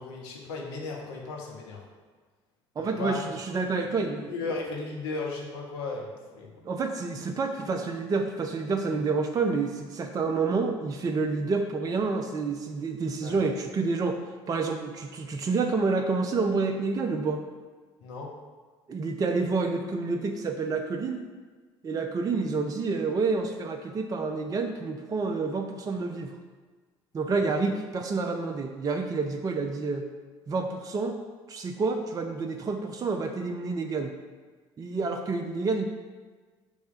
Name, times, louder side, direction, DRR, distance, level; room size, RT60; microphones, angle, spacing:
voice 1, 0.0-1.8 2.8-3.2 4.3-6.5 13.2-13.4 18.0-18.3 27.4-27.5, left 3 dB, 65° left, -1 dB, 1.1 m, -35 dB
voice 2, 2.8-4.3 6.7-14.2 14.5-17.4 18.9-21.2 21.8-26.3 27.1-30.1 30.5-31.2 31.5-34.1 34.8-35.8, right 4 dB, 25° right, 4 dB, 0.5 m, -28 dB
5.4 x 3.3 x 5.6 m, 1.4 s
figure-of-eight pair, 60°, 15 cm